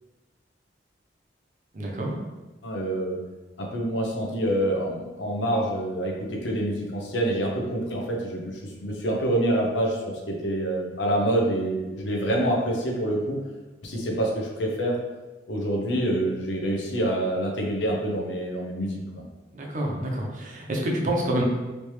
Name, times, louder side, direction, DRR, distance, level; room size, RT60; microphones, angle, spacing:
voice 1, 1.7-2.1 19.5-21.4, right 1 dB, 45° right, -1 dB, 0.6 m, -27 dB
voice 2, 2.6-3.2 3.6-13.4 13.8-15.0 15.5-19.0, right 1 dB, 85° left, 0 dB, 0.7 m, -26 dB
3.2 x 2.9 x 3.1 m, 1.2 s
head